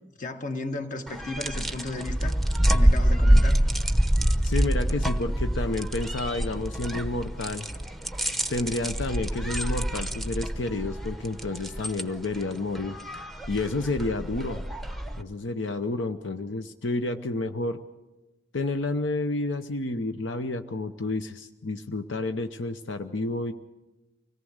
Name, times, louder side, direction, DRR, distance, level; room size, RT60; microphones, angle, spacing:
voice 1, 0.1-2.4 2.7-3.6, left 2 dB, 40° left, 6 dB, 1.7 m, -34 dB
sound 1, 1.1-15.2, right 1 dB, ahead, 0.8 m, -26 dB
voice 2, 4.4-7.7 8.5-13.0 13.5-14.6 15.2-17.8 18.5-23.5, left 2 dB, 80° left, 8 dB, 0.9 m, -30 dB
25.0 x 18.0 x 6.5 m, 1.1 s
head